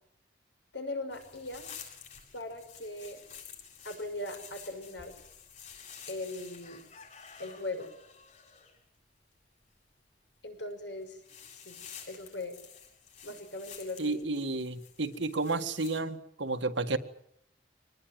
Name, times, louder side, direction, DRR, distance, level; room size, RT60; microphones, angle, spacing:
voice 1, 0.7-1.7 2.3-3.2 3.8-5.1 6.1-6.8 7.4-7.9 10.4-11.2 11.6-11.8 12.1-12.5 13.2-14.2, left 2 dB, 70° left, 6 dB, 6.1 m, -39 dB
sound 1, 1.1-8.8 10.5-10.7 11.0-16.0, left 7 dB, 40° left, 7.5 m, -50 dB
voice 2, 14.0-17.0, right 3 dB, 75° right, 8 dB, 1.9 m, -31 dB
24.5 x 20.0 x 9.3 m, 0.71 s
head